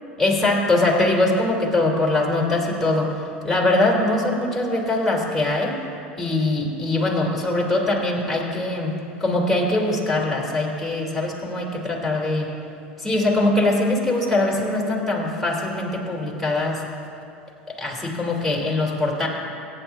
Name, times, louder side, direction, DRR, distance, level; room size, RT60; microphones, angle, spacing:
voice 1, 0.2-3.1 3.4-5.8 6.2-8.9 9.2-12.5 13.0-16.8 17.8-19.3, left 2 dB, ahead, -3 dB, 3.2 m, -22 dB
24.0 x 9.5 x 2.6 m, 2.6 s
figure-of-eight pair, 80°, 6 cm